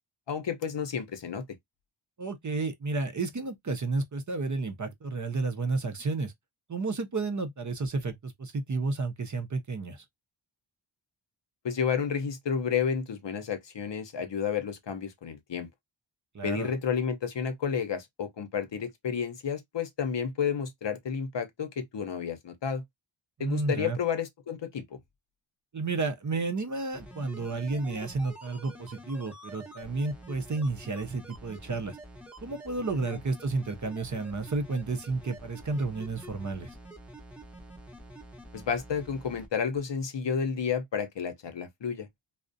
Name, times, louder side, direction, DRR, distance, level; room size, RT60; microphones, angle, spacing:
voice 1, 0.3-1.4 11.6-15.7 16.4-22.8 23.4-24.8 38.5-42.1, left 7 dB, 60° left, 0.7 m, -31 dB
voice 2, 2.2-6.3 6.7-10.0 16.3-16.7 23.4-24.0 25.7-32.0 32.4-36.8, right 3 dB, 40° right, 0.6 m, -31 dB
sound 1, 26.9-39.5 39.8-39.9, right 1 dB, 5° right, 0.8 m, -47 dB
2.4 x 2.1 x 2.5 m
wide cardioid pair, 60°, 50 cm